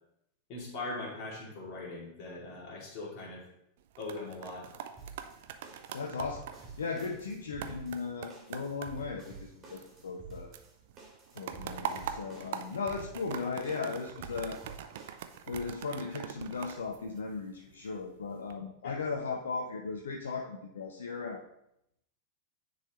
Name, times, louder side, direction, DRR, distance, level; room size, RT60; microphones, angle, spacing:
voice 1, 0.5-3.4 4.0-4.7 18.8-19.0, left 2 dB, 40° left, -3 dB, 2.3 m, -40 dB
sound 1, 3.8-10.3 10.5-17.7 18.2-18.5, right 9 dB, 55° right, 0.4 m, -43 dB
sound 2, 5.0-15.7, right 4 dB, 25° right, 1.9 m, -50 dB
voice 2, 5.9-6.5 6.8-10.5 11.3-14.6 15.5-21.4, left 4 dB, 65° left, 2 dB, 0.5 m, -37 dB
9.7 x 3.9 x 3.0 m, 0.79 s
figure-of-eight pair, 90°, 0 cm